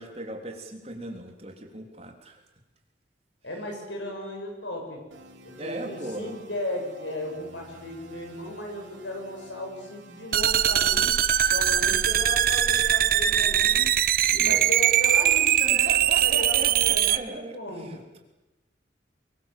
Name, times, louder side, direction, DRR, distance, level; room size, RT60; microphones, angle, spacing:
voice 1, 0.0-2.4 5.6-6.3 14.4-14.8 15.7-18.2, right 1 dB, 35° right, 2 dB, 3.6 m, -38 dB
voice 2, 3.4-5.0 5.4-11.1 11.4-13.9 14.3-17.9, left 1 dB, 85° left, 2 dB, 7.3 m, -36 dB
sound 1, 5.1-13.8, right 1 dB, 85° right, 3.1 m, -50 dB
sound 2, 10.3-17.2, right 10 dB, 50° right, 0.8 m, -21 dB
24.5 x 22.5 x 7.6 m, 1.0 s
head